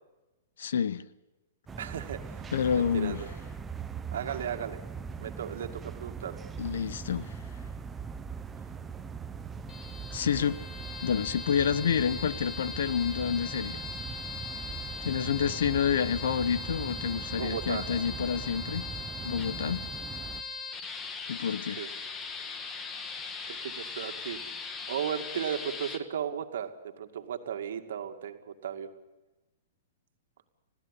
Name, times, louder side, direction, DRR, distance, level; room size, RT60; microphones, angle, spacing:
voice 1, 0.6-1.0 2.5-3.2 6.6-7.4 10.1-10.6 11.0-13.9 15.0-18.9 19.2-19.8 21.3-21.8, left 7 dB, 75° left, 1.0 m, -28 dB
sound 1, 1.7-20.4, right 6 dB, 10° right, 0.9 m, -41 dB
voice 2, 1.8-3.3 4.1-4.8 5.2-6.4 17.3-18.0 21.8-21.9 23.5-24.6 24.9-28.9, right 8 dB, 75° right, 2.2 m, -36 dB
sound 2, 9.6-26.0, left 4 dB, 20° left, 1.7 m, -40 dB
20.5 x 15.5 x 10.0 m
hypercardioid pair, 145°, 0 cm